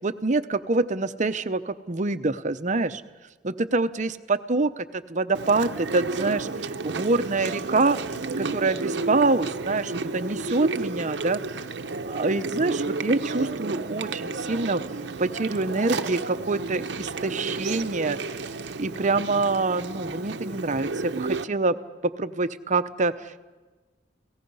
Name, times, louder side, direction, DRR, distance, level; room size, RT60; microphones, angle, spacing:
voice 1, 0.0-3.0 3.4-8.0 8.4-11.4 12.1-14.8 15.2-18.2 18.8-21.8 22.2-23.4, right 3 dB, 45° right, 11 dB, 0.8 m, -26 dB
Chewing mastication, 5.3-21.4, right 3 dB, 75° right, 0.8 m, -32 dB
30.0 x 18.0 x 5.5 m, 1.3 s
head